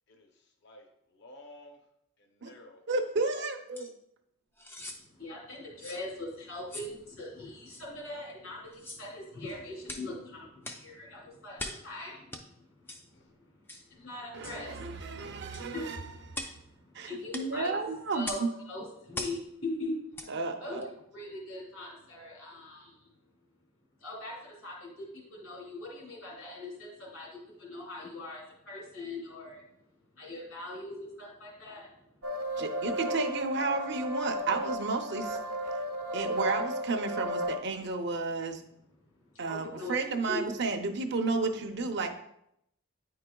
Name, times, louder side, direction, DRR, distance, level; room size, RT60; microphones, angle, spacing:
voice 1, 0.1-1.8 2.2-2.8 13.1-13.2, left 1 dB, 50° left, 3 dB, 0.7 m, -53 dB
voice 2, 2.9-3.9 14.3-16.0 16.3-16.5 16.9-18.5 20.3-20.8 32.6-35.4 36.1-38.6 39.4-42.1, right 3 dB, 50° right, 4 dB, 0.6 m, -32 dB
sound 1, 3.7-3.9 4.6-5.0 5.8-6.0 6.7-6.9 7.7-7.8 8.7-9.1 9.8-10.1 10.6-10.9 11.6-11.9 12.3-12.4 12.9-13.0 13.7-13.9 14.4-14.6 15.5-15.7 16.3-16.6 17.3-17.5 18.2-18.5 19.1-19.4 20.1-20.3 20.8-20.9, left 1 dB, 10° left, 0.3 m, -41 dB
voice 3, 5.1-12.9 13.3-13.5 13.9-15.3 15.6-16.0 16.4-17.7 18.1-18.4 18.7-19.9 20.6-20.8 21.1-23.1 24.0-29.6 30.2-31.9 39.5-39.9 40.2-40.4, left 2 dB, 75° left, -3 dB, 2.3 m, -41 dB
sound 2, 32.2-37.6, equal, 80° right, 0.9 m, -34 dB
9.4 x 4.7 x 2.3 m, 0.76 s
head